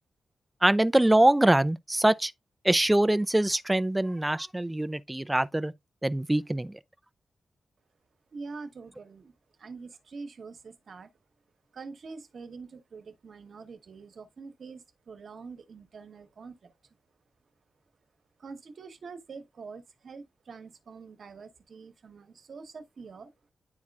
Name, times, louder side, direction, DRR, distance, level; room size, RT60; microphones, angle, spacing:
voice 1, 0.6-2.3 2.6-5.7 6.0-6.7, right 1 dB, 10° right, 0.3 m, -23 dB
voice 2, 8.3-9.3 9.6-11.1 11.7-17.0 18.4-23.3, right 4 dB, 50° right, 1.1 m, -45 dB
10.5 x 4.3 x 2.3 m
wide cardioid pair, 180°, 0 cm